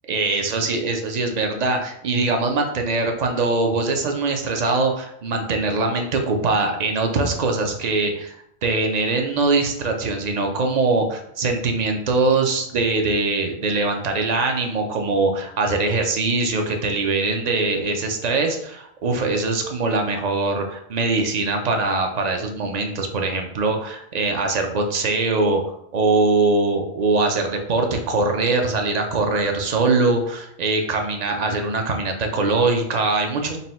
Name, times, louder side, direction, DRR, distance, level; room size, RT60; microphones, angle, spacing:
voice 1, 0.1-8.4 8.6-33.6, right 3 dB, 50° right, 4 dB, 0.6 m, -22 dB
4.1 x 2.3 x 4.1 m, 0.74 s
omnidirectional pair, 1.1 m